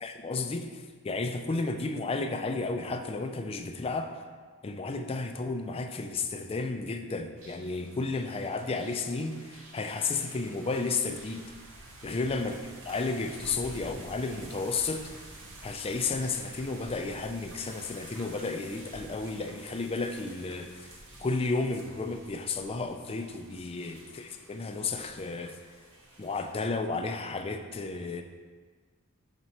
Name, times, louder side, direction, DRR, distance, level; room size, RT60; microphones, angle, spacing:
voice 1, 0.0-4.1 4.6-11.4 12.0-12.6 12.8-15.1 15.6-20.9 21.2-25.6 26.2-28.2, left 3 dB, 25° left, 5 dB, 0.4 m, -32 dB
sound 1, 7.4-26.5, right 2 dB, 60° right, 1.0 m, -50 dB
6.1 x 4.3 x 4.1 m, 1.5 s
head